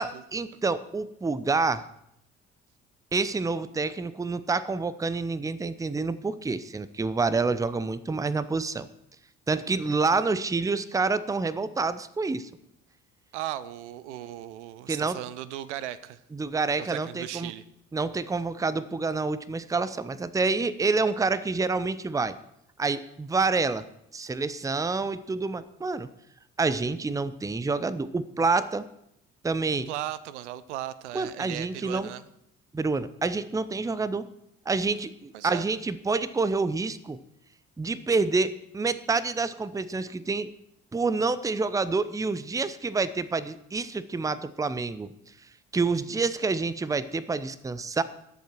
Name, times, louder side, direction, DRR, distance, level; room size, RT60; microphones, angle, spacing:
voice 1, 0.0-1.8 3.1-8.9 9.5-12.5 14.9-15.2 16.3-17.5 17.9-22.4 22.8-23.9 24.1-26.1 26.6-28.9 29.4-29.9 31.1-32.1 32.7-34.3 34.7-37.2 37.8-40.5 40.9-45.1 45.7-48.0, right 4 dB, 10° right, 17 dB, 0.6 m, -28 dB
voice 2, 13.3-16.2 16.8-17.6 29.9-32.2 35.3-35.7, right 13 dB, 70° right, 17 dB, 0.7 m, -37 dB
21.0 x 7.4 x 4.5 m, 0.76 s
figure-of-eight pair, 50°, 36 cm